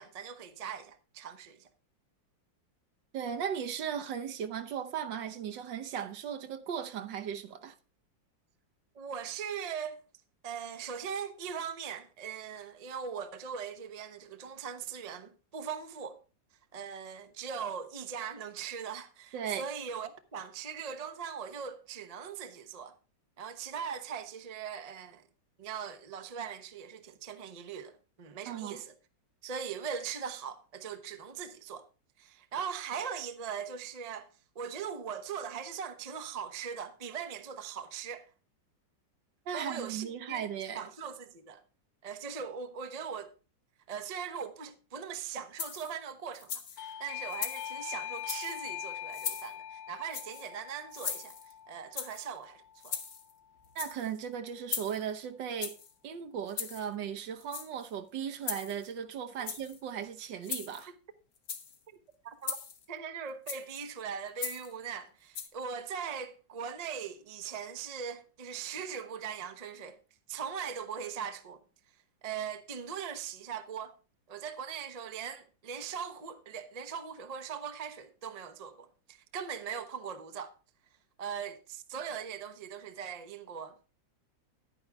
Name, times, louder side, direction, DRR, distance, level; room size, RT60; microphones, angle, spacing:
voice 1, 0.0-1.7 8.9-10.0 10.4-16.2 16.7-22.9 23.4-25.2 25.6-28.9 29.4-31.8 32.2-34.3 34.5-38.3 39.5-41.6 42.0-43.3 43.9-51.4 51.7-53.0 59.4-59.5 62.2-62.6 62.9-70.0 70.3-71.6 72.2-73.9 74.3-80.5 81.2-83.8, right 7 dB, 40° right, 0.5 m, -40 dB
voice 2, 3.1-7.7 19.3-19.7 28.5-28.8 39.5-40.9 53.7-55.7 56.0-60.9, right 8 dB, 75° right, 1.6 m, -37 dB
sound 1, 45.6-46.0 46.3-46.8 47.3-47.7 48.2-48.6 49.1-49.5 50.1-50.5 50.9-51.5 52.0-52.3 52.8-53.3 53.6-54.1 54.7-55.1 55.6-55.9 56.5-56.9 57.4-57.9 58.4-58.9 59.4-59.8 60.4-60.9 61.4-61.8 62.4-62.8 63.5-63.8 64.4-64.7 65.3-65.5, left 6 dB, 55° left, 1.5 m, -38 dB
Doorbell, 46.8-53.2, left 11 dB, 80° left, 1.4 m, -43 dB
10.0 x 9.4 x 3.4 m
omnidirectional pair, 2.0 m